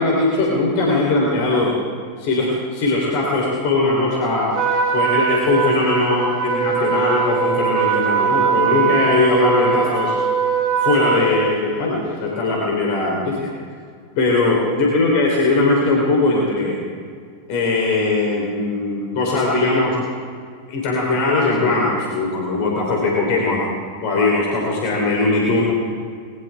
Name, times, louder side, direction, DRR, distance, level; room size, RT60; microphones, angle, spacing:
voice 1, 0.0-1.8 2.2-4.5 4.9-10.2 10.8-13.4 14.2-16.8 17.5-20.0 20.7-23.6 24.0-25.6, left 2 dB, 45° left, -2 dB, 3.5 m, -19 dB
Trumpet, 4.5-11.4, right 7 dB, 40° right, 3.3 m, -21 dB
21.0 x 18.0 x 3.5 m, 2.1 s
figure-of-eight pair, 90°, 0 cm